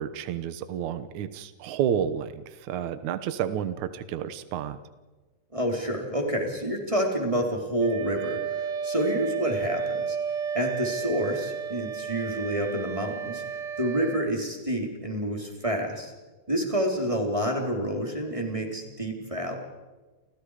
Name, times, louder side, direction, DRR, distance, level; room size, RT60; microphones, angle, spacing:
voice 1, 0.0-4.8, right 9 dB, 90° right, 11 dB, 1.6 m, -30 dB
voice 2, 5.5-10.2 10.5-13.4 13.8-16.1 16.5-19.6, equal, 10° right, 1 dB, 3.2 m, -28 dB
Wind instrument woodwind instrument, 7.8-14.3, right 6 dB, 65° right, 2.9 m, -32 dB
29.5 x 27.5 x 5.0 m, 1.2 s
omnidirectional pair, 5.2 m